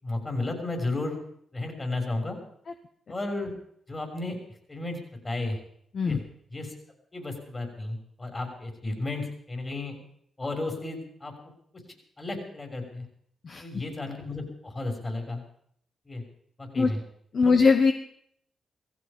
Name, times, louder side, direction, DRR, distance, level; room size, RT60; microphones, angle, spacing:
voice 1, 0.0-1.2 1.5-2.4 3.1-3.5 3.9-4.4 4.7-5.0 5.2-5.6 6.0-6.2 6.5-6.7 7.1-10.0 10.4-11.3 12.2-13.0 13.6-15.4 16.1-16.2 16.6-17.0 17.4-17.5, left 2 dB, 35° left, 3 dB, 6.2 m, -33 dB
voice 2, 13.4-13.8 16.8-16.9 17.3-17.9, left 4 dB, 55° left, 7 dB, 1.1 m, -21 dB
17.0 x 15.5 x 5.4 m, 0.66 s
supercardioid pair, 45°, 0 cm